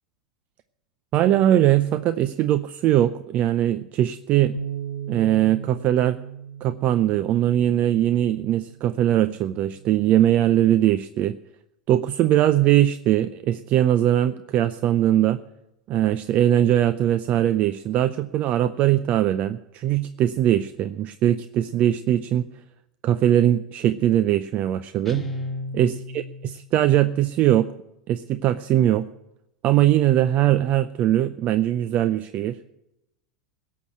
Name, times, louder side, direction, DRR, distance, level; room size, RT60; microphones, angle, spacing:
voice 1, 1.1-4.6 5.1-6.2 6.6-11.4 11.9-15.4 15.9-22.5 23.0-25.3 25.7-27.7 28.1-29.0 29.6-32.6, right 12 dB, 40° right, 13 dB, 0.5 m, -21 dB
Bass guitar, 4.5-10.8, right 8 dB, 80° right, 1.5 m, -38 dB
Guitar, 25.1-26.8, left 2 dB, 5° left, 2.3 m, -33 dB
17.0 x 6.6 x 8.4 m, 0.88 s
figure-of-eight pair, 85°, 4 cm